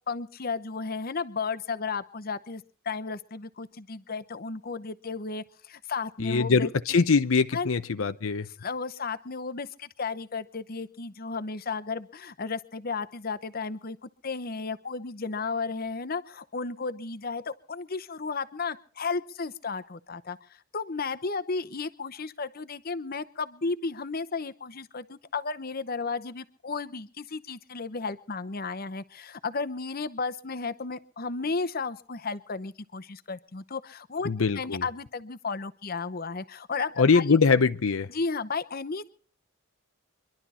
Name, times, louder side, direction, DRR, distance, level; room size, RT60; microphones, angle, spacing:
voice 1, 0.1-6.7 7.5-7.7 8.5-20.4 20.7-37.2 38.1-39.1, left 4 dB, 45° left, 0.9 m, -34 dB
voice 2, 6.2-8.5 34.2-34.8 37.0-38.1, left 4 dB, 80° left, 0.7 m, -23 dB
25.0 x 11.5 x 4.2 m
head